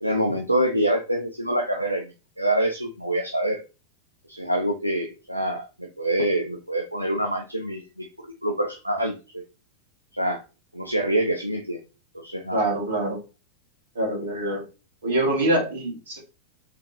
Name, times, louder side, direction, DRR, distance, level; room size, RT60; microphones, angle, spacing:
voice 1, 0.0-3.6 4.3-9.4 10.1-10.4 10.7-11.8 12.1-12.6, right 1 dB, 90° right, 3 dB, 0.5 m, -26 dB
voice 2, 12.5-13.2 14.0-14.6 15.0-16.2, right 1 dB, 70° right, -3 dB, 2.4 m, -24 dB
3.7 x 3.7 x 2.7 m, 0.30 s
figure-of-eight pair, 90°, 0 cm